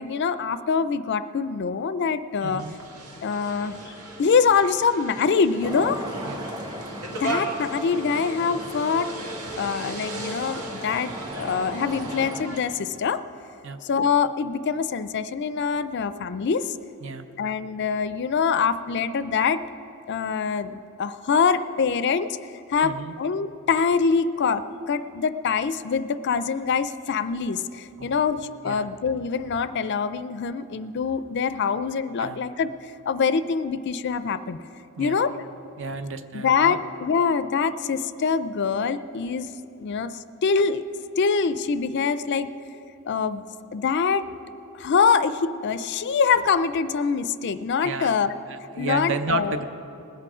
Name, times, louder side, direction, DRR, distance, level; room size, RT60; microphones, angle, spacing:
voice 1, 0.0-2.6 3.2-3.8 4.2-6.0 7.2-9.1 9.6-13.2 13.8-16.8 17.4-19.6 20.1-22.4 22.7-34.6 35.0-35.4 36.3-39.5 39.8-40.8 41.2-42.5 43.1-43.4 43.7-44.3 44.7-48.3 48.8-49.6, left 5 dB, 50° left, 13 dB, 0.4 m, -24 dB
voice 2, 2.4-2.8 6.3-6.5 7.2-7.5 13.6-13.8 17.0-17.3 22.8-23.1 28.0-28.2 28.6-28.9 32.2-32.4 35.0-35.2 35.8-36.8 47.8-48.1 48.5-49.6, right 4 dB, 55° right, 10 dB, 0.6 m, -32 dB
sound 1, 2.6-12.6, right 2 dB, 75° right, 1.8 m, -37 dB
Traffic noise roadway noise, 5.6-12.4, equal, 20° right, 1.0 m, -37 dB
20.0 x 8.4 x 4.9 m, 2.9 s
head